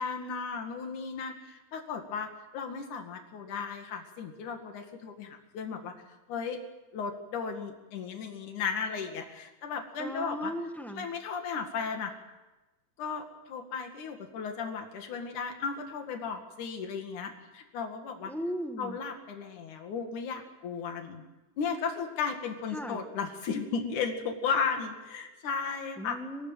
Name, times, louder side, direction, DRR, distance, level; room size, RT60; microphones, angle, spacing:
voice 1, 0.0-5.9 6.3-6.6 6.9-10.5 11.0-12.1 13.0-18.3 18.8-21.2 21.6-26.2, left 5 dB, 80° left, 4 dB, 3.6 m, -35 dB
voice 2, 10.0-11.1 18.2-19.0 22.7-23.0 26.0-26.5, equal, ahead, 5 dB, 0.5 m, -37 dB
25.5 x 18.5 x 9.1 m, 1.1 s
omnidirectional pair, 3.5 m